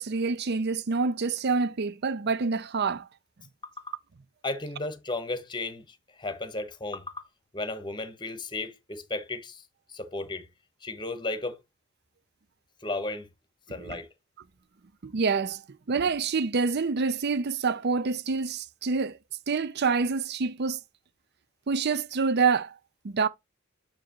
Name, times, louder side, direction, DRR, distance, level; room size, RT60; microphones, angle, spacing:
voice 1, 0.0-3.1 13.8-14.0 15.0-15.6 15.9-19.2 19.5-20.8 21.7-22.8 23.0-23.3, right 4 dB, 55° right, 0.6 m, -27 dB
voice 2, 4.4-7.2 7.5-9.6 9.9-10.5 10.8-11.6 12.8-13.3 13.7-14.1, left 2 dB, 25° left, 1.0 m, -34 dB
7.3 x 4.8 x 3.0 m
head